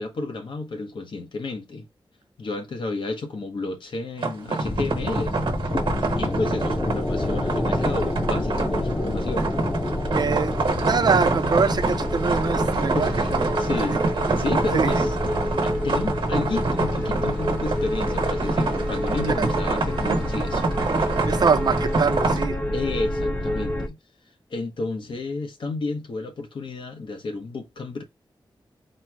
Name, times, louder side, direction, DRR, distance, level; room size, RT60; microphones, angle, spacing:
voice 1, 0.0-1.9 2.4-5.3 6.2-9.5 12.9-15.3 15.6-20.7 22.7-24.0 24.5-28.0, left 3 dB, 75° left, 0.9 m, -31 dB
sound 1, 4.2-22.4, right 3 dB, 75° right, 1.1 m, -27 dB
sound 2, 4.6-23.9, left 1 dB, 20° left, 0.7 m, -27 dB
voice 2, 10.1-10.5 10.9-13.1 13.4-13.5 14.7-14.9 19.4-19.5 21.3-22.6, right 5 dB, 55° right, 0.5 m, -24 dB
4.3 x 2.1 x 4.6 m
wide cardioid pair, 125°, 9 cm